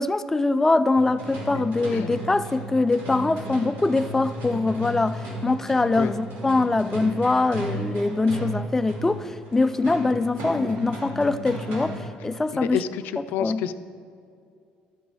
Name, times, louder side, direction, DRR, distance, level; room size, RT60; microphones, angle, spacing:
voice 1, 0.0-12.8 13.2-13.6, left 3 dB, 10° left, 13 dB, 0.3 m, -23 dB
sound 1, 0.9-12.2, equal, 80° right, 2.8 m, -34 dB
voice 2, 12.7-13.0 13.3-13.7, left 10 dB, 70° left, 12 dB, 0.5 m, -28 dB
12.5 x 7.9 x 4.8 m, 2.5 s
cardioid pair, 130°, 3 cm